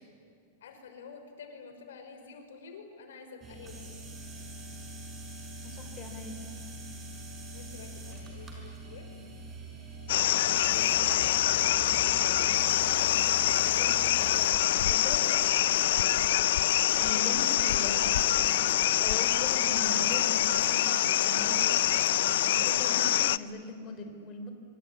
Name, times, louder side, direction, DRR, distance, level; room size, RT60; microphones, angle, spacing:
voice 1, 0.6-3.8 7.5-9.1 10.7-11.4, left 5 dB, 85° left, 6 dB, 5.4 m, -49 dB
sound 1, 3.4-14.5, right 1 dB, 20° right, 5.5 m, -43 dB
voice 2, 5.6-6.4 13.8-21.9 22.4-24.5, left 3 dB, 30° left, 6 dB, 3.8 m, -41 dB
sound 2, 10.1-23.4, left 13 dB, 70° left, 0.6 m, -25 dB
25.5 x 24.5 x 9.7 m, 2.4 s
supercardioid pair, 160°, 0 cm